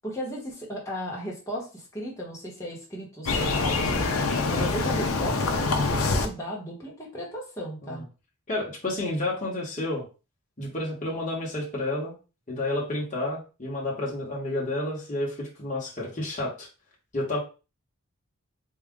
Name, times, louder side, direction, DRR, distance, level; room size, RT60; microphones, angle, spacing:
voice 1, 0.0-4.1 4.5-8.0, equal, 15° left, -4 dB, 1.1 m, -35 dB
sound 1, 3.3-6.3, left 3 dB, 75° left, 0.6 m, -25 dB
voice 2, 8.5-10.0 10.6-12.2 12.5-16.7 17.1-17.4, left 2 dB, 35° left, -4 dB, 1.1 m, -30 dB
3.6 x 2.4 x 3.6 m, 0.32 s
head